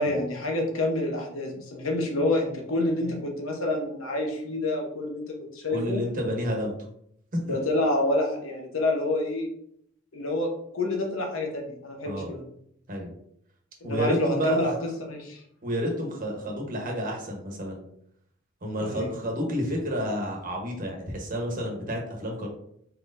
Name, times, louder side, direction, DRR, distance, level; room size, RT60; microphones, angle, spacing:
voice 1, 0.0-6.0 7.4-9.5 10.1-12.4 13.8-14.7 15.0-15.4 18.8-19.1, left 1 dB, 85° left, 1 dB, 1.0 m, -28 dB
voice 2, 5.7-6.7 7.5-7.6 12.0-12.3 12.9-13.1 13.8-14.7 15.6-17.8 18.6-22.5, equal, 40° right, 0 dB, 1.1 m, -30 dB
4.4 x 4.2 x 2.6 m, 0.71 s
head